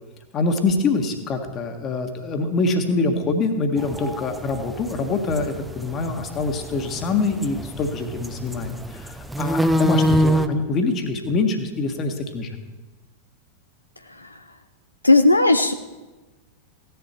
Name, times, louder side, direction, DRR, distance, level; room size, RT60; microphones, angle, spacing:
voice 1, 0.3-12.5, left 3 dB, 30° left, 6 dB, 1.7 m, -24 dB
sound 1, 3.8-10.5, equal, 5° right, 0.7 m, -25 dB
voice 2, 15.0-15.7, left 2 dB, 85° left, 8 dB, 0.6 m, -16 dB
16.0 x 10.5 x 4.5 m, 1.2 s
figure-of-eight pair, 90°, 0 cm